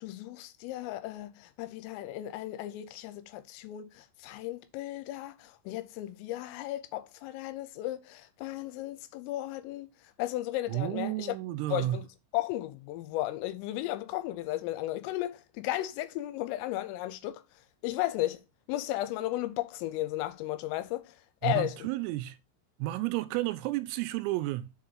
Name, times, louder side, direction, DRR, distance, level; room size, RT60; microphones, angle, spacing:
voice 1, 0.0-9.9 10.2-11.4 11.7-12.1 12.3-17.4 17.8-18.4 18.7-21.2 21.4-21.8, left 15 dB, 85° left, 3.2 m, -35 dB
voice 2, 10.7-12.0 21.4-22.4 22.8-24.7, right 16 dB, 85° right, 3.2 m, -32 dB
7.2 x 5.1 x 4.4 m
omnidirectional pair, 6.0 m